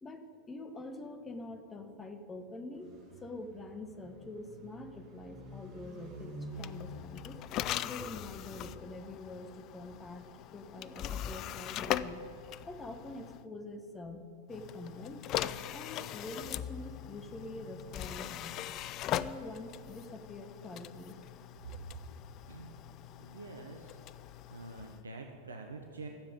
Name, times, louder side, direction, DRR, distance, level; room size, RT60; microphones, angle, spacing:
voice 1, 0.0-2.9 3.2-7.4 7.8-10.3 10.5-12.2 12.7-15.3 15.7-18.6 19.1-21.2, left 2 dB, 15° left, 7 dB, 1.3 m, -45 dB
sound 1, 2.7-8.2, equal, 30° right, 3.6 m, -49 dB
sound 2, 6.5-13.4 14.5-25.0, left 12 dB, 35° left, 0.4 m, -40 dB
voice 2, 22.5-22.8 23.2-24.0 24.5-26.1, right 3 dB, 75° right, 3 dB, 1.0 m, -46 dB
13.0 x 7.5 x 8.8 m, 2.7 s
figure-of-eight pair, 90°, 0 cm